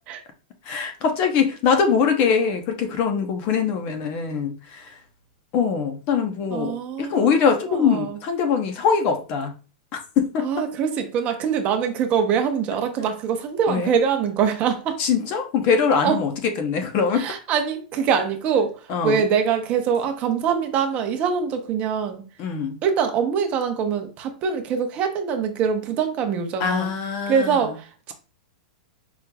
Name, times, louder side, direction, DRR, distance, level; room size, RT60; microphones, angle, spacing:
voice 1, 0.6-5.0 5.5-9.5 10.2-10.5 13.7-13.9 15.0-17.3 18.9-19.2 22.4-22.8 26.6-27.6, left 6 dB, 40° left, 6 dB, 0.8 m, -22 dB
voice 2, 6.5-7.4 7.7-8.2 10.4-15.0 16.0-16.2 17.2-18.7 19.0-22.2 22.8-26.9 27.3-28.1, right 7 dB, 30° right, 6 dB, 0.7 m, -23 dB
5.3 x 3.0 x 2.3 m, 0.36 s
hypercardioid pair, 145°, 4 cm